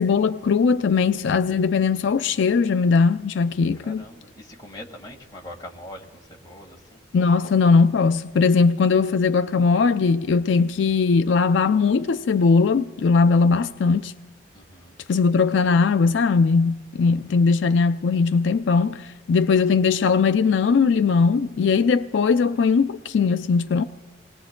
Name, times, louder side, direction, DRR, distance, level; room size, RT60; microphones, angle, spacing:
voice 1, 0.0-4.0 7.1-14.1 15.1-23.8, left 5 dB, 70° left, 0.4 m, -19 dB
voice 2, 3.8-7.0 14.5-15.0 17.0-17.4, left 1 dB, 20° left, 1.7 m, -43 dB
28.5 x 20.0 x 2.2 m
head